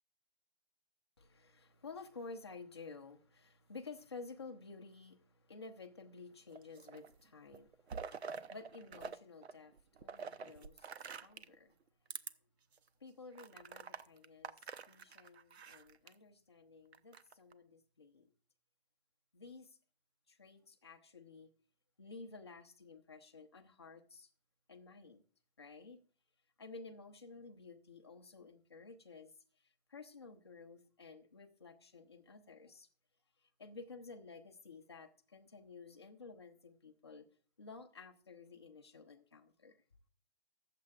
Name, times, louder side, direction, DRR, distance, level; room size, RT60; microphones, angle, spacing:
voice 1, 1.2-11.8 12.4-12.5 13.0-18.3 19.3-19.8 20.3-21.5 22.0-24.3 24.7-25.2 25.6-26.0 26.6-32.9 33.4-37.3 37.6-39.8, left 4 dB, 25° left, 0.6 m, -53 dB
sound 1, 6.5-7.2 7.5-9.2 9.4-11.6 12.1-12.3 12.8-12.9 13.4-16.1 16.9-17.5, right 6 dB, 80° right, 0.8 m, -47 dB
21.0 x 7.5 x 2.4 m
hypercardioid pair, 180°, 32 cm